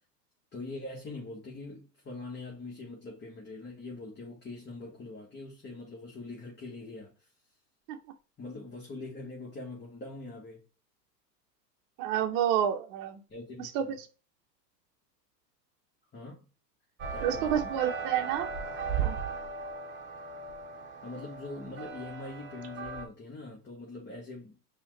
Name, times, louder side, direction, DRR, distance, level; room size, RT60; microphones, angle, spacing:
voice 1, 0.5-7.3 8.4-10.6 13.3-14.0 16.1-16.5 17.1-17.8 21.0-24.6, left 2 dB, 20° left, 1.5 m, -43 dB
voice 2, 12.0-13.2 13.6-13.8 17.2-18.5 19.0-19.2, right 10 dB, 45° right, 0.9 m, -29 dB
sound 1, 17.0-23.1, right 6 dB, 20° right, 1.1 m, -37 dB
5.3 x 2.5 x 3.3 m
hypercardioid pair, 105°, 50 cm